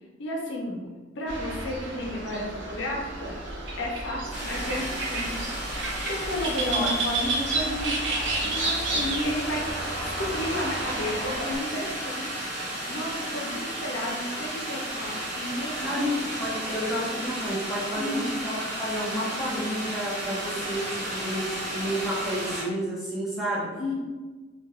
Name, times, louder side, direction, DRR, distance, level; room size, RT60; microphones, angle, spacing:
voice 1, 0.2-0.8 1.2-3.3 3.8-5.3 5.8-8.0 8.4-9.7 10.0-12.3 12.6-16.1 17.9-18.2 23.8-23.9, left 1 dB, 70° left, -1 dB, 0.5 m, -32 dB
sound 1, 1.3-11.6, right 2 dB, 65° right, 0.5 m, -31 dB
sound 2, 4.3-22.6, right 1 dB, 30° right, 1.1 m, -34 dB
voice 2, 15.8-23.7, equal, ahead, -8 dB, 0.6 m, -31 dB
2.1 x 2.1 x 2.9 m, 1.3 s
head